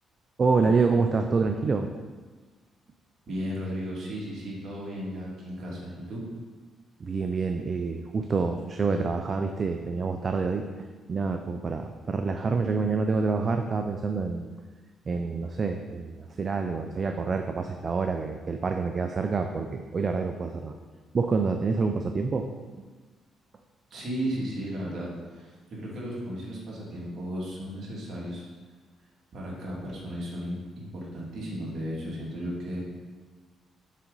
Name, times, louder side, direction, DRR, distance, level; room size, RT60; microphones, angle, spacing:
voice 1, 0.4-1.9 7.0-10.6 11.1-14.5 15.1-20.8 21.1-22.5, right 4 dB, 40° right, 5 dB, 0.4 m, -27 dB
voice 2, 3.3-6.2 23.9-28.4 29.3-32.9, equal, 60° right, -4 dB, 2.3 m, -35 dB
7.4 x 3.8 x 5.4 m, 1.4 s
cardioid pair, 90°, 0 cm